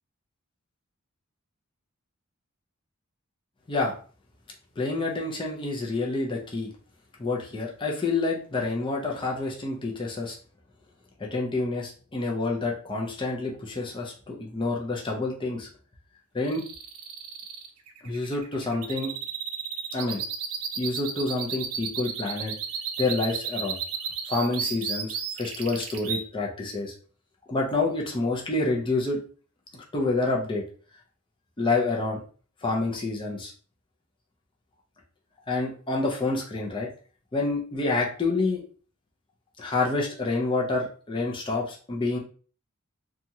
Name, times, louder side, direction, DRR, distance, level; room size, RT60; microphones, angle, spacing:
voice 1, 4.8-6.7 7.2-10.4 11.2-15.7 16.3-16.6 18.0-19.1 19.9-20.2 20.8-22.5 23.0-23.8 24.3-26.9 27.5-29.2 29.7-30.6 31.6-32.2 32.6-33.5 35.5-36.9 37.3-38.6 39.6-42.2, left 3 dB, 25° left, -2 dB, 0.6 m, -28 dB
sound 1, 16.4-26.2, right 7 dB, 80° right, 0.5 m, -33 dB
2.8 x 2.4 x 2.7 m, 0.40 s
head